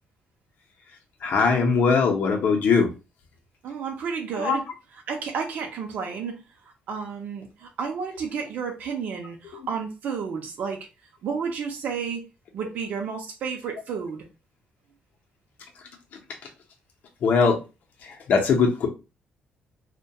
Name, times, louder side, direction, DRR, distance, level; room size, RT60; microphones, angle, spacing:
voice 1, 1.2-2.9 4.3-4.6 9.5-9.7 17.2-17.6 18.0-18.9, left 5 dB, 60° left, 1 dB, 0.6 m, -21 dB
voice 2, 3.6-4.6 5.1-6.4 6.9-10.9 11.2-12.3 12.5-14.2, right 6 dB, 55° right, 2 dB, 0.5 m, -31 dB
2.2 x 2.1 x 2.6 m, 0.29 s
cardioid pair, 160°, 3 cm